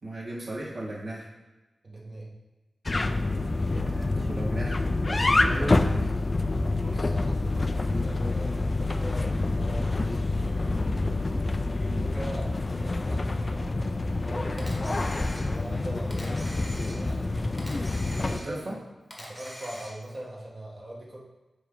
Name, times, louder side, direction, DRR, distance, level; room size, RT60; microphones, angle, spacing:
voice 1, 0.0-1.3 3.5-6.2 11.8-12.0 18.1-18.8, right 1 dB, 60° right, -6 dB, 1.9 m, -36 dB
voice 2, 1.8-2.3 6.8-11.0 12.0-13.9 14.2-16.5 16.8-17.6 18.2-18.7 19.2-21.2, right 1 dB, 35° right, -4 dB, 1.5 m, -42 dB
sound 1, 2.9-18.4, left 2 dB, 30° left, 0.3 m, -27 dB
Camera, 14.6-15.7 16.1-17.2 17.6-18.7 19.1-20.2, equal, ahead, 1.3 m, -44 dB
9.1 x 3.2 x 3.9 m, 1.1 s
wide cardioid pair, 120°, 0 cm